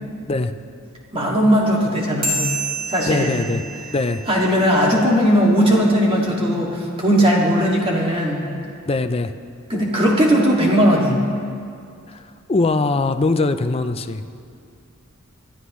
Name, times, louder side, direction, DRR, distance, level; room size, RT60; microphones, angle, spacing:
voice 1, 1.1-2.5 2.9-3.4 4.3-8.5 9.7-11.2, equal, 25° right, -3 dB, 2.2 m, -18 dB
sound 1, 2.2-5.1, right 2 dB, 40° right, 2.7 m, -29 dB
voice 2, 3.1-3.6 3.9-4.2 8.9-9.3 12.1-12.2 12.5-14.2, left 3 dB, 25° left, 9 dB, 0.5 m, -21 dB
21.0 x 13.0 x 3.1 m, 2.3 s
head